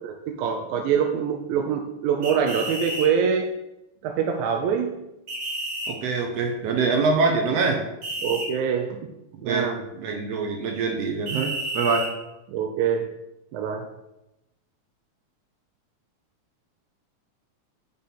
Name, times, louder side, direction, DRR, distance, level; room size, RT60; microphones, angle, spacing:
voice 1, 0.0-3.5 4.0-4.9 8.2-9.1 9.4-9.9 12.5-13.1 13.5-13.9, right 7 dB, 85° right, 3 dB, 2.0 m, -25 dB
sound 1, 2.2-3.1 5.3-5.9 8.0-8.5 11.3-12.1, right 1 dB, 55° right, 2.4 m, -31 dB
voice 2, 5.9-7.8 9.3-12.1, right 4 dB, 70° right, 3 dB, 1.6 m, -24 dB
5.6 x 3.8 x 5.8 m, 0.90 s
omnidirectional pair, 3.4 m